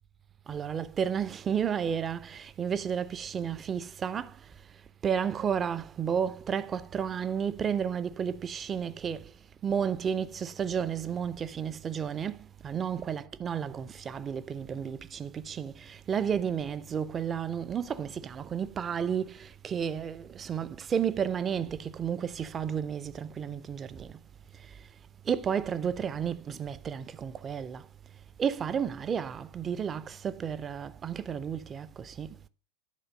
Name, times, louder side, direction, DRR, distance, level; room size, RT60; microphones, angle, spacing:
voice 1, 0.5-9.3 9.6-24.2 24.5-24.9 25.2-27.9 28.4-32.4, right 7 dB, 20° right, 0.4 m, -32 dB
10.5 x 4.1 x 5.1 m
figure-of-eight pair, 90°, 0 cm